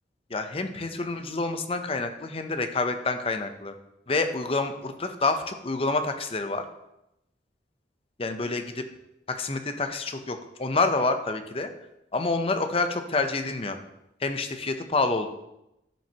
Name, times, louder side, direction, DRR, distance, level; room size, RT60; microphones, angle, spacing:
voice 1, 0.3-3.7 4.1-6.6 8.2-8.8 9.3-11.7 12.1-13.8 14.2-15.3, left 3 dB, 30° left, 7 dB, 0.7 m, -28 dB
11.5 x 6.1 x 2.9 m, 0.86 s
head